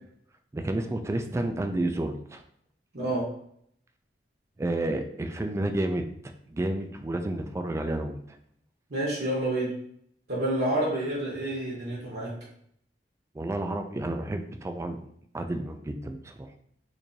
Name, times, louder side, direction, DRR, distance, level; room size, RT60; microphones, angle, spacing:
voice 1, 0.5-2.4 4.6-6.1 6.5-8.2 13.3-15.1 15.3-16.5, right 1 dB, 15° right, 7 dB, 0.3 m, -30 dB
voice 2, 8.9-9.7 10.3-12.3, right 1 dB, 65° right, -6 dB, 1.2 m, -28 dB
4.5 x 2.6 x 2.6 m, 0.68 s
head